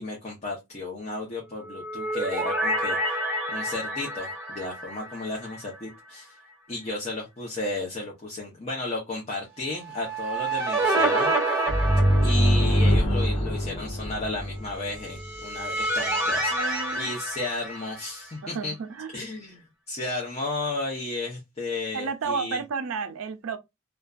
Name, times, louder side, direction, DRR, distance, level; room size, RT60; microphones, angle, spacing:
voice 1, 0.0-3.2 3.5-6.3 6.7-11.3 12.2-18.7 19.1-22.6, left 2 dB, 30° left, 0.6 m, -33 dB
sound 1, 1.6-5.9 6.2-6.3 9.8-12.9 15.0-18.4, right 1 dB, 10° right, 1.3 m, -28 dB
sound 2, 11.7-15.2, equal, 65° left, 0.9 m, -23 dB
voice 2, 16.5-17.1 18.4-19.1 21.9-23.6, right 5 dB, 65° right, 0.4 m, -32 dB
2.5 x 2.2 x 2.3 m
head